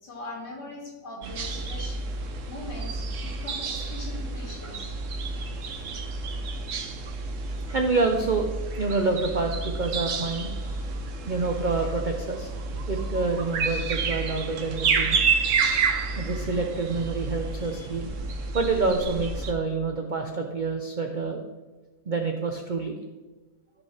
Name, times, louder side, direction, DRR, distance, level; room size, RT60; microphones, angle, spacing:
voice 1, 0.0-2.0 2.5-4.9, left 2 dB, 75° left, -5 dB, 3.3 m, -41 dB
sound 1, 1.2-19.5, right 4 dB, 55° right, 1.0 m, -30 dB
voice 2, 7.7-8.5 8.8-10.5 11.3-12.5 12.9-15.2 16.2-18.1 18.5-21.4 22.1-23.0, right 3 dB, 85° right, 3 dB, 0.4 m, -27 dB
14.0 x 5.5 x 3.4 m, 1.2 s
omnidirectional pair, 1.8 m